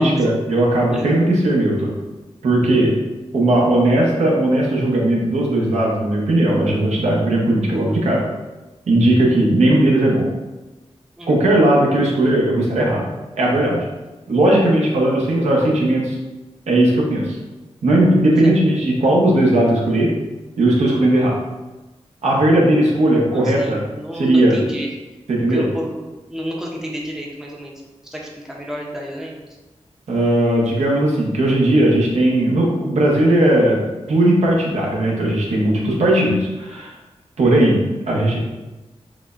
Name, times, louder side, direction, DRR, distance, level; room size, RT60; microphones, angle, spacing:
voice 1, 0.0-1.9 2.4-2.9 3.3-8.2 8.9-10.3 11.3-13.1 13.4-13.8 14.3-16.2 16.7-17.4 17.8-20.1 20.6-21.4 22.2-23.8 24.2-24.6 25.3-25.7 30.1-33.8 34.1-36.9 37.4-38.4, right 1 dB, 85° right, -3 dB, 0.8 m, -17 dB
voice 2, 23.3-24.9 25.5-26.0 26.3-27.8 28.1-29.3, equal, 5° right, -2 dB, 0.5 m, -30 dB
4.8 x 2.1 x 2.4 m, 1.1 s
wide cardioid pair, 135°, 11 cm